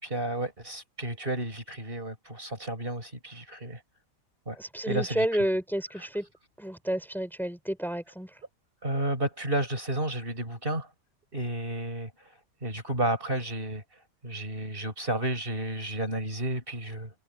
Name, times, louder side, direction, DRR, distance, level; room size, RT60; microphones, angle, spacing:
voice 1, 0.0-3.8 4.5-4.6 4.9-5.3 8.8-10.9 11.3-12.1 12.6-13.8 14.2-17.1, right 1 dB, 40° right, 6.1 m, -31 dB
voice 2, 4.6-6.3 6.6-8.3, equal, ahead, 4.5 m, -30 dB
omnidirectional pair, 1.4 m